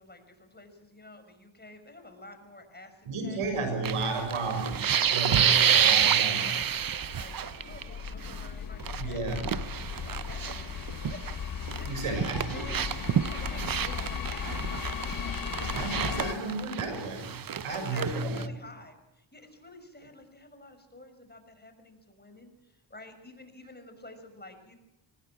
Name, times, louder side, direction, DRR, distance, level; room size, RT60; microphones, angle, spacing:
voice 1, 0.0-3.4 4.0-4.3 5.4-6.6 7.0-11.2 11.7-12.7 13.2-14.7 15.0-17.0 17.7-22.5 22.9-24.8, left 2 dB, 20° left, 7 dB, 6.3 m, -49 dB
voice 2, 3.0-6.4 9.0-9.5 11.8-12.7 15.7-18.4, right 3 dB, 85° right, 6 dB, 6.5 m, -33 dB
sound 1, 3.8-7.8 8.1-8.4 8.8-11.4 11.7-18.4, right 8 dB, 45° right, 0.8 m, -28 dB
sound 2, 6.6-16.3, left 8 dB, 45° left, 0.8 m, -37 dB
24.5 x 20.0 x 6.1 m, 0.92 s
cardioid pair, 65°, 50 cm